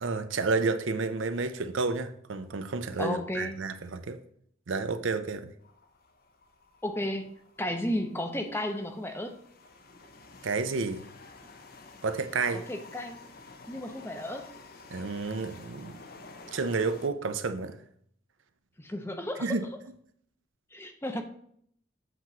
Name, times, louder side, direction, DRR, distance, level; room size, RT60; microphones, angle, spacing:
voice 1, 0.0-4.2 4.7-5.5 10.4-11.0 12.0-12.7 14.9-16.0 16.5-17.8 19.4-19.7, right 4 dB, 75° right, 0.6 m, -30 dB
voice 2, 3.0-3.6 6.8-7.3 7.6-9.4 12.5-13.2 13.7-14.5 18.8-19.6 20.7-21.2, left 1 dB, 10° left, 0.6 m, -33 dB
sound 1, 5.6-17.1, left 3 dB, 50° left, 0.7 m, -51 dB
8.0 x 3.0 x 6.0 m
head